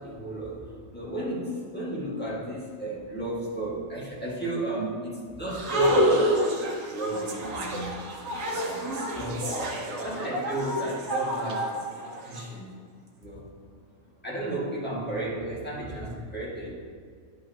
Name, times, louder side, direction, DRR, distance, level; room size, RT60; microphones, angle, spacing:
voice 1, 0.0-8.0 8.5-11.9 12.2-13.6 14.1-16.8, right 1 dB, 10° left, -8 dB, 1.7 m, -34 dB
sound 1, 5.5-12.4, equal, 75° right, 1.3 m, -28 dB
10.5 x 5.4 x 2.8 m, 2.1 s
omnidirectional pair, 1.4 m